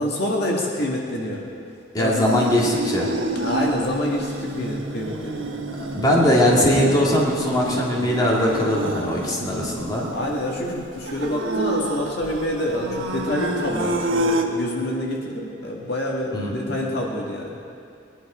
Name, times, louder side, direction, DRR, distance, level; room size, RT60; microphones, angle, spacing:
voice 1, 0.0-1.5 2.0-2.2 3.4-5.5 10.1-17.5, left 1 dB, 55° left, -2 dB, 2.0 m, -27 dB
voice 2, 1.9-3.1 5.9-10.1 16.3-16.8, left 1 dB, 20° left, -4 dB, 2.1 m, -20 dB
sound 1, 2.2-14.4, right 1 dB, 90° right, 1.3 m, -28 dB
21.0 x 11.0 x 5.0 m, 2.5 s
head